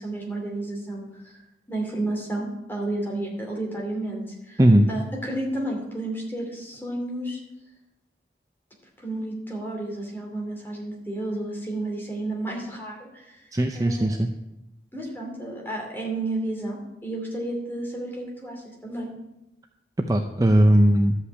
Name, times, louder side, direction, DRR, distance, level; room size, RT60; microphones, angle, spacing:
voice 1, 0.0-1.4 1.7-4.6 4.9-7.4 9.0-13.4 13.7-14.1 14.9-19.1, right 1 dB, 10° left, -1 dB, 2.5 m, -31 dB
voice 2, 13.5-14.3 20.1-21.2, right 1 dB, 20° right, 4 dB, 0.5 m, -18 dB
12.0 x 5.7 x 8.2 m, 0.92 s
head